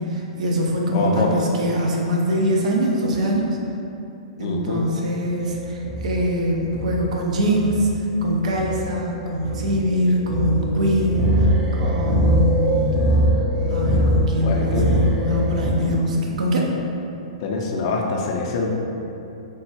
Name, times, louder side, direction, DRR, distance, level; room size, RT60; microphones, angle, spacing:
voice 1, 0.0-3.5 4.4-7.9 8.2-12.9 13.7-16.7, equal, 75° right, -1 dB, 0.5 m, -23 dB
voice 2, 0.9-1.3 4.4-4.8 14.4-14.9 17.4-18.7, left 4 dB, 50° left, 0 dB, 0.4 m, -25 dB
sound 1, 5.3-15.7, equal, 20° right, 0.4 m, -22 dB
3.3 x 2.1 x 2.7 m, 2.8 s
hypercardioid pair, 140°, 4 cm